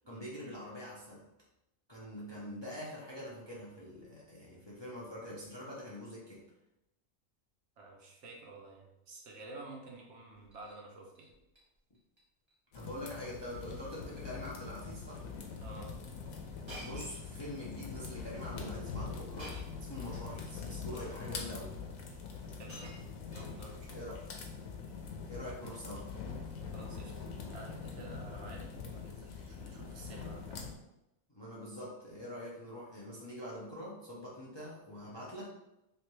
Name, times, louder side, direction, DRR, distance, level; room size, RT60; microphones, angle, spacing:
voice 1, 0.1-1.2 1.9-6.4 12.7-15.3 16.8-21.7 23.9-24.2 25.3-26.1 31.3-35.5, equal, 25° left, -6 dB, 0.6 m, -44 dB
voice 2, 7.8-11.3 15.6-15.9 22.6-22.9 23.3-24.3 26.7-27.2 27.5-30.6, right 2 dB, 65° right, -1 dB, 1.0 m, -51 dB
Shatter, 10.4-10.8 11.1-11.6 11.9-12.2 12.5-12.6 13.4-13.7 14.0-14.3 15.0-15.1 16.7-17.8 19.4-19.9 20.9-21.0 22.0-22.1 22.4-23.9 24.8-25.1, right 1 dB, 20° right, 1.1 m, -52 dB
sound 1, 12.7-30.7, left 5 dB, 85° left, 1.1 m, -43 dB
3.3 x 3.1 x 3.1 m, 0.88 s
omnidirectional pair, 1.4 m